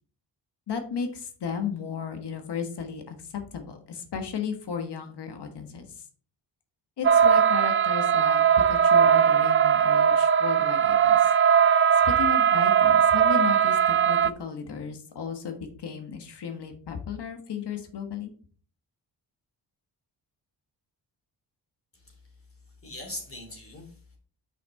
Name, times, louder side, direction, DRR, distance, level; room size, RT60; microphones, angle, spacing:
voice 1, 0.7-5.9 7.0-11.3 11.7-18.3, left 6 dB, 65° left, 6 dB, 1.4 m, -35 dB
sound 1, 7.0-14.3, right 8 dB, 30° right, 0.4 m, -20 dB
voice 2, 21.9-24.2, left 1 dB, 30° left, 1 dB, 3.1 m, -42 dB
5.9 x 5.9 x 4.3 m, 0.43 s
cardioid pair, 75°, 43 cm